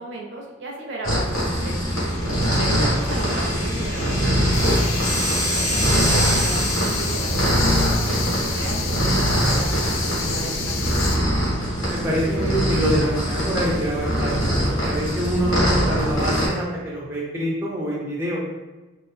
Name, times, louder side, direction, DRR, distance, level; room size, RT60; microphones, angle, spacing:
voice 1, 0.0-1.7 2.6-4.4 4.8-7.5 7.8-10.7, right 2 dB, 55° right, -1 dB, 0.5 m, -35 dB
sound 1, 1.0-16.5, equal, 85° left, 1.3 m, -22 dB
sound 2, 1.9-7.8, equal, 45° left, 1.2 m, -29 dB
voice 2, 2.4-2.9 11.9-14.3 14.7-18.4, equal, 10° right, -5 dB, 0.4 m, -26 dB
sound 3, 4.5-11.2, left 6 dB, 70° left, 0.4 m, -30 dB
2.6 x 2.2 x 3.5 m, 1.1 s
head